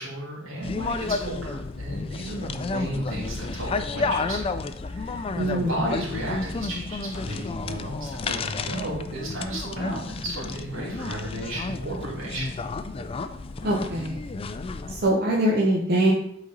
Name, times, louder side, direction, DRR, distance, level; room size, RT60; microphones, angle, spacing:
voice 1, 0.0-12.6, right 1 dB, 85° right, -5 dB, 2.6 m, -34 dB
sound 1, 0.6-15.1, left 3 dB, 30° left, 0.3 m, -31 dB
voice 2, 5.3-5.7 13.6-14.2 14.9-16.1, right 1 dB, 55° right, -3 dB, 0.9 m, -23 dB
8.0 x 4.1 x 3.9 m, 0.71 s
head